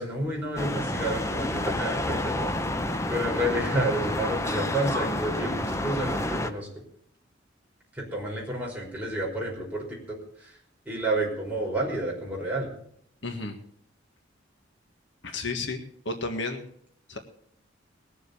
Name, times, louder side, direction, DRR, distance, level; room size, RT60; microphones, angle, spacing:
voice 1, 0.0-2.5 3.1-6.7 7.9-10.6 10.9-12.7, right 1 dB, 10° right, -3 dB, 5.3 m, -30 dB
sound 1, 0.6-6.5, left 1 dB, 15° left, 0.7 m, -29 dB
voice 2, 13.2-13.6 15.2-15.8 16.0-16.6 17.1-17.2, left 3 dB, 70° left, 5 dB, 1.7 m, -32 dB
20.5 x 7.4 x 7.0 m, 0.66 s
head